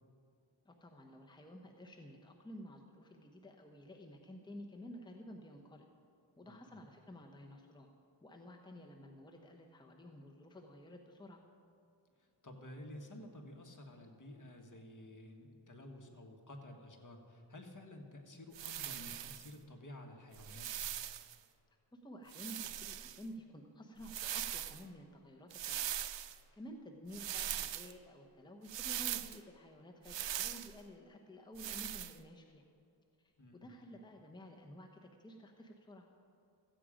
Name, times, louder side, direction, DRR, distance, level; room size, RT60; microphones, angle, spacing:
voice 1, 0.6-5.9 6.4-7.9 8.2-11.4 21.9-26.0 26.5-32.6 33.2-36.1, equal, 10° left, 2 dB, 0.9 m, -52 dB
voice 2, 12.2-20.9 33.4-33.7, left 1 dB, 40° left, 3 dB, 1.6 m, -52 dB
sound 1, 18.5-19.5 20.3-21.3 22.3-23.2 24.0-24.8 25.5-26.4 27.1-27.9 28.7-29.4 30.0-30.7 31.6-32.2, right 11 dB, 65° right, 0.6 m, -41 dB
14.5 x 8.6 x 5.1 m, 2.5 s
cardioid pair, 70°, 47 cm